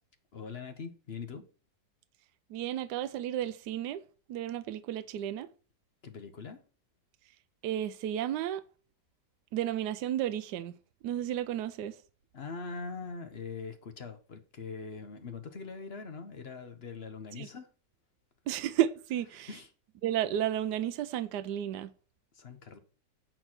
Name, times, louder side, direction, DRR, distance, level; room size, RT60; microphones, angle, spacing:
voice 1, 0.3-1.4 6.0-6.6 12.3-17.7 19.3-19.7 22.3-22.8, left 4 dB, 45° left, 0.9 m, -42 dB
voice 2, 2.5-4.0 4.3-5.5 7.6-8.6 9.5-10.7 11.0-12.0 17.4-17.5 18.5-19.5 20.0-21.9, right 11 dB, 75° right, 1.2 m, -32 dB
9.0 x 4.5 x 5.9 m
omnidirectional pair, 1.9 m